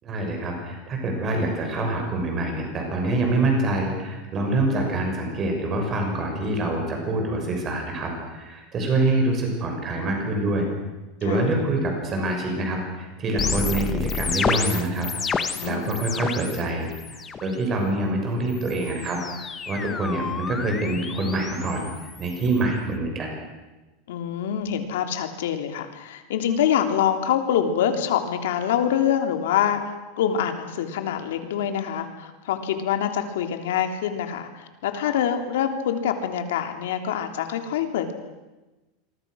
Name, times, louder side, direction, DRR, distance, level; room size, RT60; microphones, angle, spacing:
voice 1, 0.0-10.7 11.2-23.3, right 2 dB, 20° right, 2 dB, 6.2 m, -26 dB
sound 1, 13.4-16.6 16.9-17.5 18.5-22.6, left 5 dB, 15° left, 1.0 m, -30 dB
voice 2, 15.5-15.9 24.1-38.1, left 9 dB, 80° left, 6 dB, 3.3 m, -25 dB
27.5 x 23.5 x 6.5 m, 1.1 s
supercardioid pair, 180°, 0 cm